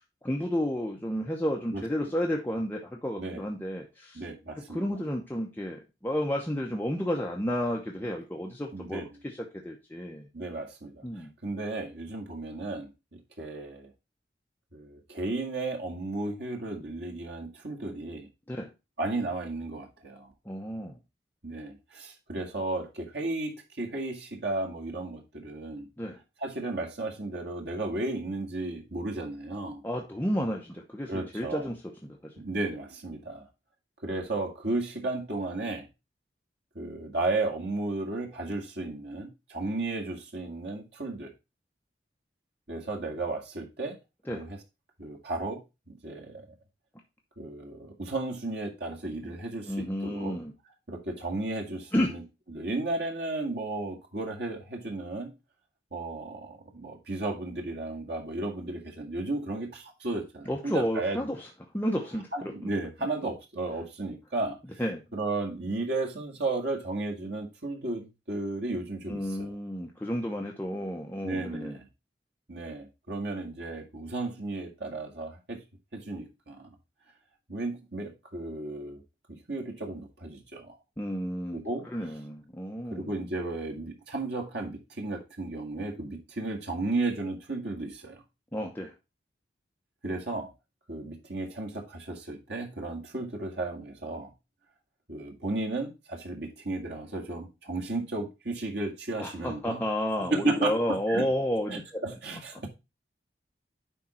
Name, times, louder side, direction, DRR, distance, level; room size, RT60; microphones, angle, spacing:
voice 1, 0.2-4.2 4.7-10.3 11.0-11.3 18.5-18.7 20.5-21.0 26.0-26.2 29.8-31.8 32.0-32.3 44.3-44.5 49.2-49.3 49.7-50.5 51.9-52.1 60.5-61.5 61.7-62.7 64.8-65.0 69.1-71.8 81.0-81.6 81.9-83.1 88.5-88.9 99.2-102.0, equal, 10° left, 0.9 m, -31 dB
voice 2, 1.7-2.1 3.2-3.4 4.1-4.8 8.7-9.1 10.3-13.9 14.7-18.3 19.0-20.3 21.4-25.9 26.4-29.8 31.1-31.7 32.4-33.5 34.0-35.9 36.8-41.3 42.7-44.0 44.3-44.6 45.0-46.5 47.4-50.4 50.9-52.2 52.5-55.3 55.9-61.3 62.3-64.6 65.1-69.5 71.2-71.9 72.5-75.6 75.9-76.7 77.5-79.0 79.3-80.8 81.5-82.1 82.9-88.2 90.0-90.5 90.9-94.3 95.1-99.8 100.3-101.3 101.7-102.7, right 2 dB, 70° right, 2.0 m, -34 dB
10.0 x 3.7 x 4.3 m
head